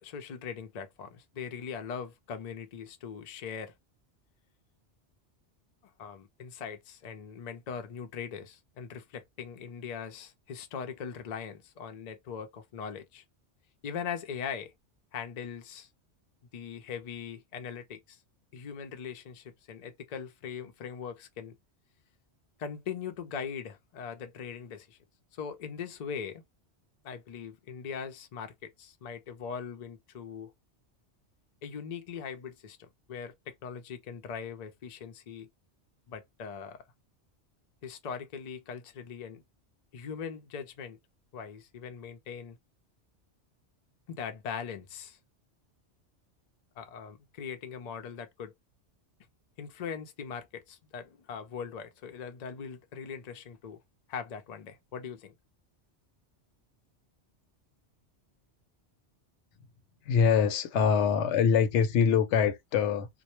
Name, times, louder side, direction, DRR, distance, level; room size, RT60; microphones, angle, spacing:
voice 1, 0.0-3.7 6.0-13.2 13.8-14.7 15.1-15.9 16.5-18.2 18.5-21.5 22.6-25.0 25.3-26.4 27.0-30.5 31.6-35.5 36.1-36.8 37.8-39.4 39.9-41.0 41.3-42.6 44.1-45.2 46.8-48.5 49.6-53.8 54.1-55.3, left 6 dB, 50° left, 0.5 m, -40 dB
voice 2, 60.1-63.1, left 7 dB, 80° left, 0.9 m, -24 dB
2.2 x 2.1 x 2.9 m
omnidirectional pair, 1.2 m